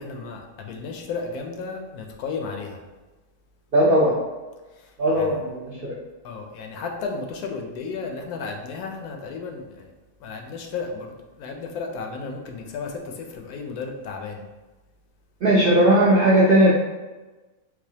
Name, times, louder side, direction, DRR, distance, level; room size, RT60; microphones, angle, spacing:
voice 1, 0.0-2.8 4.8-5.4 6.2-9.9 10.2-14.4, left 4 dB, 80° left, 2 dB, 1.0 m, -34 dB
voice 2, 3.7-4.2 5.0-5.8 15.4-16.8, right 1 dB, 70° right, -6 dB, 0.5 m, -17 dB
4.1 x 2.4 x 2.7 m, 1.2 s
omnidirectional pair, 1.6 m